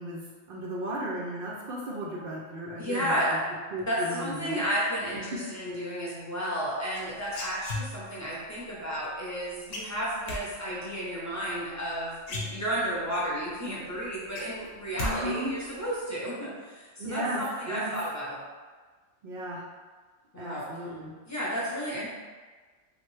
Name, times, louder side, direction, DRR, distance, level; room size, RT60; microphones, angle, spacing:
voice 1, 0.0-3.4 3.7-4.6 14.9-15.5 17.0-17.9 19.2-19.6 20.4-21.1, right 1 dB, 65° right, -3 dB, 0.5 m, -35 dB
voice 2, 2.8-3.4 3.9-18.4 20.3-20.7 21.2-22.1, equal, 15° left, -7 dB, 0.6 m, -32 dB
sound 1, 6.9-8.2 9.7-10.4 11.8-11.9 12.2-13.0 13.5-13.6 13.9-15.1 15.4-15.9, left 2 dB, 75° left, 1.1 m, -35 dB
3.2 x 2.5 x 3.1 m, 1.4 s
omnidirectional pair, 1.4 m